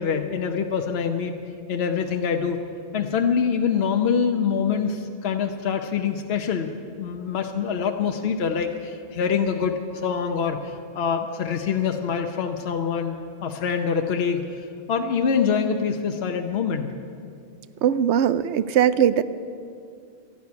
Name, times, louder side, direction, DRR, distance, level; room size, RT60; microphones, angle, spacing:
voice 1, 0.0-1.3 1.7-2.6 2.9-6.7 7.0-16.9, left 6 dB, 70° left, 5 dB, 1.0 m, -25 dB
voice 2, 17.8-19.2, right 9 dB, 85° right, 15 dB, 0.9 m, -20 dB
12.0 x 12.0 x 9.5 m, 2.4 s
omnidirectional pair, 1.1 m